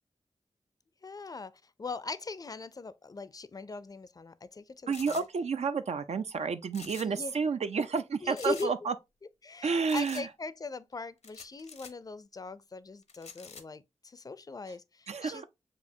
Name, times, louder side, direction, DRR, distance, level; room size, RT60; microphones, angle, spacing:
voice 1, 1.0-5.2 7.0-7.3 8.2-8.7 9.4-15.4, left 4 dB, 30° left, 0.4 m, -40 dB
sound 1, 4.9-5.3 6.7-7.2 7.5-7.6 8.3-8.7 9.9-10.3 11.2-11.9 13.1-13.6, left 5 dB, 75° left, 0.7 m, -47 dB
voice 2, 4.9-8.9 9.6-10.3 15.1-15.4, right 5 dB, 70° right, 0.4 m, -30 dB
7.1 x 2.4 x 2.7 m
cardioid pair, 60°, 12 cm